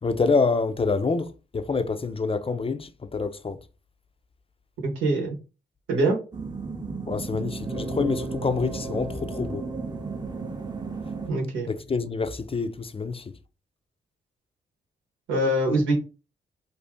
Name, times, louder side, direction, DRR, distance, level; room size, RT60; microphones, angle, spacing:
voice 1, 0.0-3.6 7.1-9.6 11.7-13.3, left 4 dB, 30° left, 0.4 m, -27 dB
voice 2, 4.8-5.3 5.9-6.2 11.3-11.7 15.3-15.9, right 1 dB, 90° right, 1.0 m, -23 dB
sound 1, 6.3-11.3, right 3 dB, 20° right, 0.6 m, -33 dB
2.6 x 2.4 x 3.5 m
supercardioid pair, 50°, 20 cm